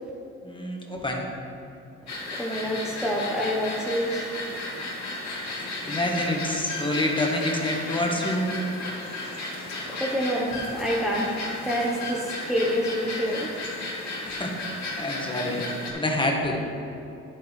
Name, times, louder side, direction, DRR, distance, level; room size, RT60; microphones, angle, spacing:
voice 1, 0.4-1.2 5.4-8.5 14.2-14.5 14.9-15.6 15.9-16.6, left 1 dB, 15° left, 0 dB, 1.5 m, -27 dB
sound 1, 2.1-15.9, left 2 dB, 65° left, 2.4 m, -34 dB
voice 2, 2.1-4.6 9.7-13.6, equal, ahead, -4 dB, 1.1 m, -28 dB
10.0 x 9.4 x 3.4 m, 2.7 s
cardioid pair, 90°, 30 cm